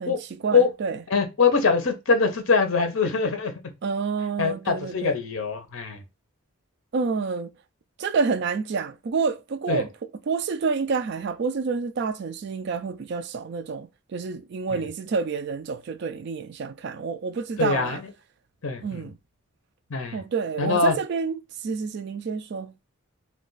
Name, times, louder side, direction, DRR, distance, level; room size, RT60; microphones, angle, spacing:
voice 1, 0.0-1.0 3.8-5.1 6.9-7.5 8.0-9.9 10.3-18.0 18.8-19.2 20.1-22.7, right 5 dB, 50° right, 0.3 m, -28 dB
voice 2, 1.1-3.5 4.4-6.0 9.7-9.8 14.7-14.8 17.6-18.1 18.6-19.1 19.9-20.2 20.6-21.0, left 5 dB, 65° left, 0.7 m, -23 dB
2.4 x 2.3 x 3.8 m
head